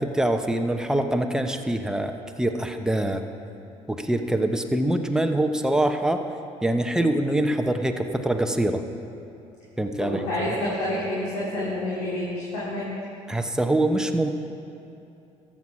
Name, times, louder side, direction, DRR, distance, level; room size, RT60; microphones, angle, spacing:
voice 1, 0.0-2.1 2.4-3.2 3.9-6.2 6.6-8.8 9.8-10.2 13.3-14.3, right 1 dB, 5° right, 5 dB, 1.0 m, -24 dB
voice 2, 10.0-12.9, left 1 dB, 75° left, -8 dB, 2.6 m, -28 dB
13.5 x 7.4 x 5.9 m, 2.8 s
hypercardioid pair, 60°, 16 cm